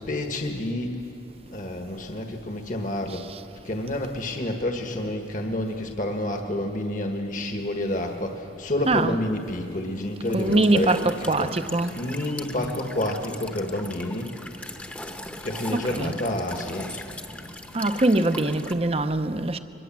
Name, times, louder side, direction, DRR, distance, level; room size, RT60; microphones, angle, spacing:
voice 1, 0.1-1.0 1.5-3.3 3.6-11.5 11.9-14.4 15.4-17.0, left 1 dB, 45° left, 1.5 m, -29 dB
Walk footsteps / Chirp tweet / Stream, 10.2-18.7, left 1 dB, 10° left, 1.0 m, -39 dB
voice 2, 10.3-12.0 15.7-16.1 17.7-19.6, right 2 dB, 35° right, 0.8 m, -23 dB
23.5 x 20.5 x 7.5 m
head